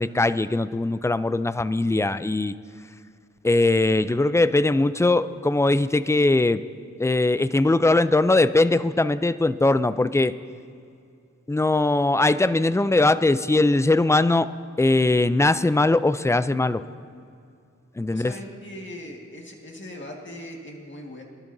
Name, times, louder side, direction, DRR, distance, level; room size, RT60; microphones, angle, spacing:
voice 1, 0.0-2.6 3.4-6.6 7.0-10.3 11.5-14.5 14.8-16.8 18.0-18.3, left 2 dB, 10° left, 13 dB, 0.3 m, -20 dB
voice 2, 18.1-21.2, left 1 dB, 40° left, -1 dB, 1.7 m, -39 dB
23.0 x 12.0 x 2.7 m, 2.4 s
wide cardioid pair, 55°, 30 cm